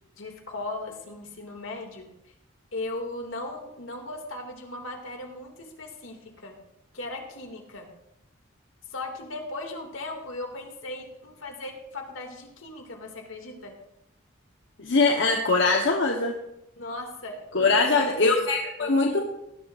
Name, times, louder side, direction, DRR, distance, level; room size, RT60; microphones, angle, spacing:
voice 1, 0.2-2.1 2.7-6.5 6.9-7.9 8.9-13.7 16.8-18.5 18.8-19.2, left 2 dB, 85° left, 3 dB, 2.3 m, -37 dB
voice 2, 14.8-16.3 17.5-19.2, left 3 dB, 65° left, 1 dB, 1.1 m, -22 dB
19.0 x 11.0 x 2.5 m, 0.83 s
head